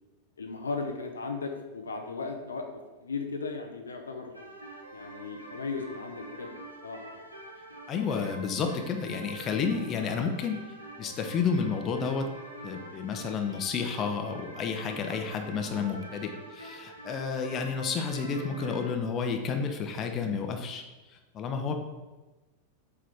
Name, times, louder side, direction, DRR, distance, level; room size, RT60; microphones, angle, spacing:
voice 1, 0.4-4.5 4.9-6.6 6.8-7.3, left 4 dB, 70° left, 4 dB, 0.6 m, -36 dB
sound 1, 4.3-18.9, right 1 dB, 90° right, 1.0 m, -46 dB
voice 2, 7.9-10.6 11.0-12.3 12.6-20.8 21.3-21.8, left 5 dB, 30° left, 4 dB, 0.8 m, -31 dB
7.5 x 3.7 x 3.6 m, 1.2 s
figure-of-eight pair, 90°, 0 cm